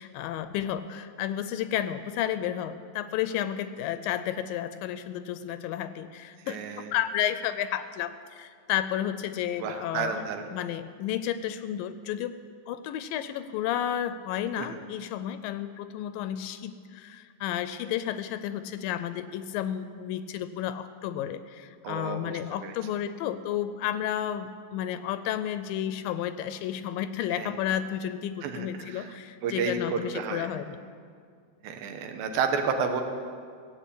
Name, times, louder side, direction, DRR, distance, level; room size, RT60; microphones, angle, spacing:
voice 1, 0.0-6.6 6.9-12.4 12.7-30.8, left 10 dB, 80° left, 12 dB, 2.2 m, -32 dB
voice 2, 6.5-6.9 9.6-10.5 14.6-14.7 21.8-22.8 27.3-27.5 28.4-29.1 29.4-30.5 31.6-33.0, right 5 dB, 85° right, 6 dB, 2.8 m, -31 dB
16.5 x 8.3 x 8.3 m, 2.2 s
omnidirectional pair, 4.2 m